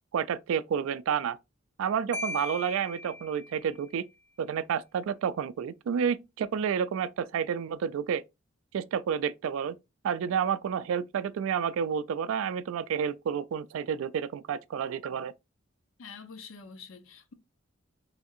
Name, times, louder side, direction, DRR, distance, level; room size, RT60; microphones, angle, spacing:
voice 1, 0.1-1.4 1.8-4.1 4.4-8.2 8.7-9.8 10.0-15.3, right 7 dB, 75° right, 0.3 m, -30 dB
Marimba xylophone, 2.1-3.9, left 2 dB, 10° left, 0.6 m, -39 dB
voice 2, 16.0-17.3, left 5 dB, 70° left, 0.6 m, -46 dB
3.4 x 2.6 x 2.4 m
head